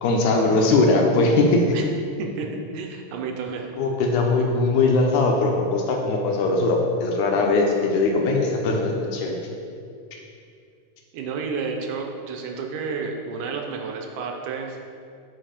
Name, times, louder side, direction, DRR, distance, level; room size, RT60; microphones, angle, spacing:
voice 1, 0.0-1.8 3.8-9.4, left 3 dB, 75° left, 1 dB, 2.0 m, -20 dB
voice 2, 2.2-3.7 11.1-14.8, right 5 dB, 80° right, 2 dB, 2.1 m, -31 dB
7.5 x 4.9 x 5.0 m, 2.4 s
omnidirectional pair, 3.8 m